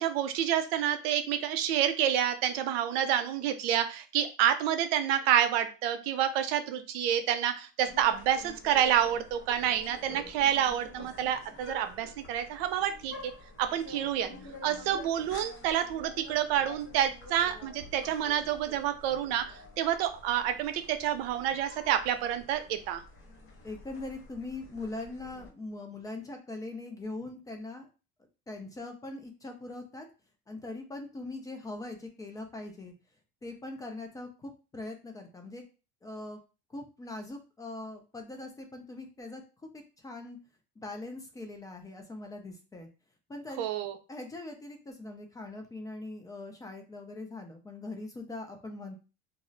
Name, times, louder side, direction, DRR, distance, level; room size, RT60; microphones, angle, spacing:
voice 1, 0.0-13.1 13.6-14.3 14.6-23.0 43.6-43.9, right 10 dB, 85° right, 8 dB, 0.5 m, -28 dB
sound 1, 7.9-25.5, left 2 dB, 45° left, 1.0 m, -49 dB
voice 2, 23.6-27.9 28.5-30.1 30.5-32.9 33.4-35.6 36.0-36.4 36.7-39.4 39.7-40.4 40.8-42.9 43.3-43.7 44.1-48.9, left 2 dB, 10° left, 3 dB, 0.3 m, -41 dB
2.4 x 2.0 x 3.8 m, 0.33 s
cardioid pair, 135°, 29 cm